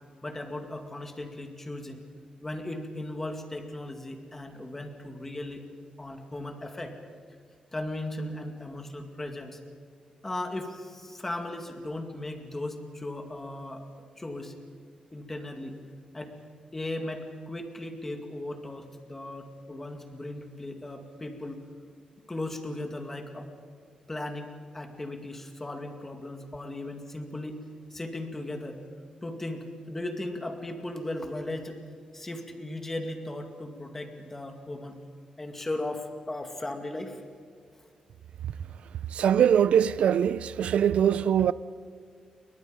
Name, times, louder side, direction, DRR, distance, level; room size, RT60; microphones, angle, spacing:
voice 1, 0.2-2.0 2.4-5.6 6.0-7.0 7.7-9.6 10.2-13.9 14.2-14.5 15.1-15.8 16.1-16.4 16.7-21.6 22.3-23.5 24.1-27.6 27.9-28.8 29.2-31.8 32.1-35.0 35.4-37.2, left 1 dB, 15° left, 2.2 m, -37 dB
voice 2, 39.2-41.5, right 9 dB, 65° right, 0.5 m, -22 dB
29.0 x 23.0 x 5.3 m
wide cardioid pair, 165°, 2 cm